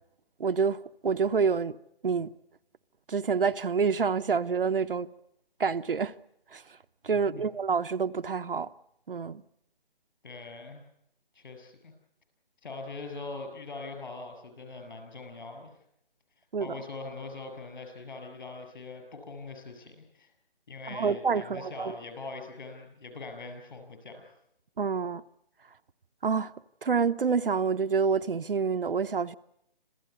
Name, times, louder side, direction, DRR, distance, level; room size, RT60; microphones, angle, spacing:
voice 1, 0.4-1.7 2.0-2.3 3.1-5.1 5.6-6.1 6.5-6.6 7.0-8.7 9.1-9.4 16.5-16.7 20.9-21.9 24.8-25.2 26.2-26.5 26.8-29.4, right 5 dB, 65° right, 0.9 m, -27 dB
voice 2, 7.1-7.5 10.2-10.8 11.3-11.9 12.6-15.7 16.6-20.3 20.7-24.3, left 3 dB, 55° left, 7.4 m, -42 dB
27.0 x 16.0 x 9.7 m
figure-of-eight pair, 165°, 29 cm